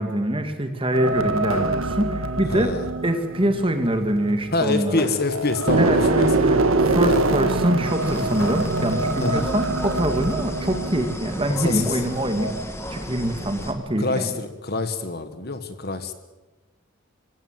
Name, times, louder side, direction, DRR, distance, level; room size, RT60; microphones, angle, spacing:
voice 1, 0.0-2.8 3.0-5.0 5.8-12.6 12.9-14.3, right 1 dB, 25° right, 7 dB, 2.1 m, -24 dB
sound 1, 0.9-4.9 5.3-12.0 12.4-12.6, right 2 dB, 90° right, 1.6 m, -24 dB
sound 2, 1.5-2.6 5.0-5.9 8.4-9.3, left 3 dB, 85° left, 2.3 m, -42 dB
voice 2, 2.5-2.9 4.5-6.3 7.0-7.3 9.2-9.5 11.5-12.0 14.0-16.1, left 3 dB, 50° left, 9 dB, 1.6 m, -26 dB
sound 3, 7.9-13.7, left 1 dB, 15° left, 2.0 m, -34 dB
25.5 x 16.0 x 7.6 m, 1.1 s
head